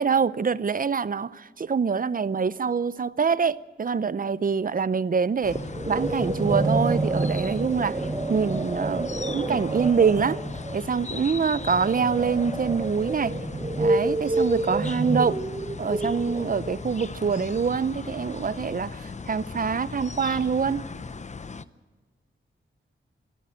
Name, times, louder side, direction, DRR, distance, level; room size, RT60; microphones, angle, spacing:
voice 1, 0.0-5.6 5.9-8.0 8.3-10.4 10.7-13.3 13.8-15.4 15.8-20.8, right 6 dB, 40° right, 0.6 m, -25 dB
sound 1, 5.4-21.7, left 4 dB, 35° left, 0.7 m, -38 dB
sound 2, 5.5-16.9, right 2 dB, 20° right, 1.1 m, -29 dB
24.0 x 13.0 x 8.9 m
wide cardioid pair, 95°, 21 cm